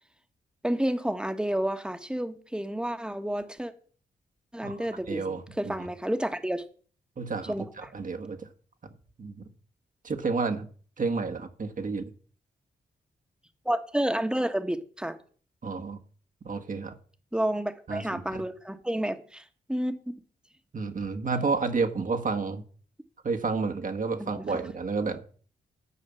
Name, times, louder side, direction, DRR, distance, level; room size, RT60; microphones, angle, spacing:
voice 1, 0.6-3.7 4.5-5.2 5.6-6.6 7.5-7.9 13.6-15.2 17.3-19.9 24.2-24.6, right 1 dB, 5° right, 1.3 m, -30 dB
voice 2, 5.1-5.7 7.2-8.5 9.2-9.5 10.0-10.7 11.0-12.1 15.6-16.0 16.4-17.0 17.9-18.4 20.7-22.6 23.2-25.2, right 4 dB, 50° right, 1.5 m, -30 dB
11.0 x 4.9 x 7.0 m
cardioid pair, 60°, 18 cm